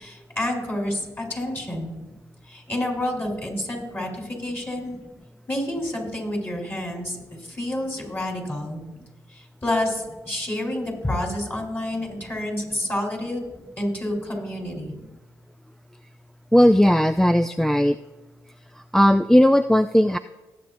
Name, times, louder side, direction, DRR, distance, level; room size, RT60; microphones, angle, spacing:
voice 1, 0.0-2.0 2.5-5.0 5.5-8.8 9.3-13.5 13.8-14.9, left 1 dB, 25° left, 0 dB, 4.0 m, -29 dB
voice 2, 16.5-18.0 18.9-20.2, equal, 5° left, 10 dB, 0.3 m, -17 dB
19.0 x 7.7 x 2.6 m, 1.1 s
supercardioid pair, 55°, 8 cm